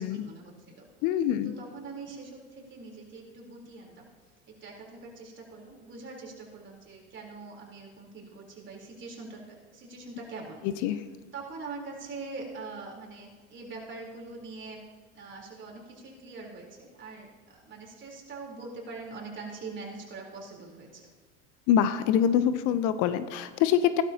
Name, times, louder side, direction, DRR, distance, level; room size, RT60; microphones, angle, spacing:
voice 1, 0.0-0.8 1.4-4.0 4.5-10.6 11.3-14.8 15.1-21.1, right 3 dB, 30° right, -2 dB, 3.9 m, -43 dB
voice 2, 1.0-1.5 10.6-11.0 21.7-24.0, left 9 dB, 55° left, 12 dB, 0.8 m, -25 dB
16.0 x 12.5 x 2.9 m, 1.4 s
hypercardioid pair, 85°, 37 cm